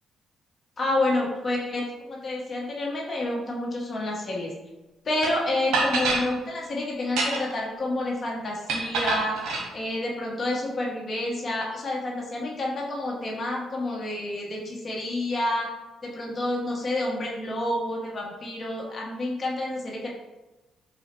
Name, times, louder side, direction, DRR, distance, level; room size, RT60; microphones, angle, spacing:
voice 1, 0.8-4.5 5.0-9.4 9.7-15.7 16.0-20.1, left 1 dB, 40° left, -2 dB, 1.3 m, -29 dB
sound 1, 5.2-5.3 5.7-6.3 7.0-7.6 8.7-9.7, right 3 dB, 90° right, 0.9 m, -26 dB
4.2 x 2.7 x 4.5 m, 1.1 s
cardioid pair, 90°, 0 cm